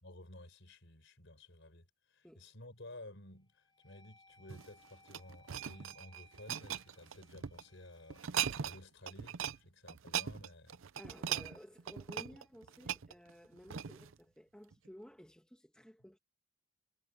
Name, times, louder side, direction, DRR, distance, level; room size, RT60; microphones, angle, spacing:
voice 1, 0.0-8.2 8.6-10.8, left 1 dB, 60° left, 5.8 m, -54 dB
sound 1, 2.5-2.9 3.4-9.6, left 2 dB, 20° left, 4.8 m, -66 dB
sound 2, 4.4-7.6 8.1-8.8 9.1-9.6 9.9-14.1 14.7-14.9, right 9 dB, 70° right, 0.6 m, -40 dB
voice 2, 11.0-16.2, equal, 5° left, 2.0 m, -55 dB
head